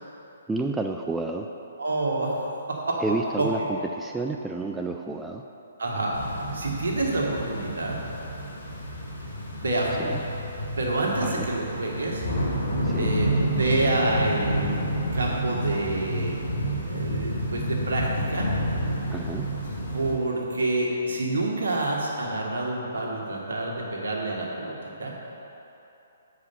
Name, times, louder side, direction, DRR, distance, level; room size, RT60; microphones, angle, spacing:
voice 1, 0.5-1.5 3.0-5.4 10.0-10.2 11.2-11.5 12.8-13.1 19.1-19.5, right 3 dB, 5° right, 2 dB, 0.3 m, -30 dB
voice 2, 1.8-3.5 5.8-8.0 9.4-10.2 10.8-12.2 13.0-16.4 16.8-18.5 19.9-25.1, right 2 dB, 70° right, -2 dB, 1.6 m, -28 dB
sound 1, 6.1-20.1, equal, 60° left, 1.7 m, -29 dB
6.7 x 4.8 x 6.9 m, 3.0 s
figure-of-eight pair, 135°, 0 cm